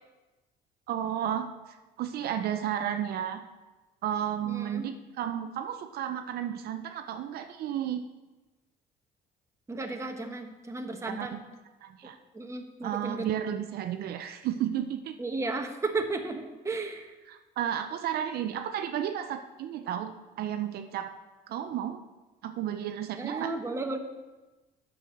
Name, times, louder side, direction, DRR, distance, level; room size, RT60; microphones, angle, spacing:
voice 1, 0.9-3.4 4.0-8.0 11.1-11.4 11.8-12.2 12.8-15.2 17.3-21.1 21.5-22.0 22.4-23.5, right 10 dB, 65° right, 7 dB, 0.6 m, -33 dB
voice 2, 4.4-4.9 9.7-11.4 12.0-13.3 15.2-17.1 23.2-24.0, right 3 dB, 15° right, 4 dB, 1.2 m, -34 dB
8.9 x 6.3 x 6.4 m, 1.1 s
cardioid pair, 110°, 17 cm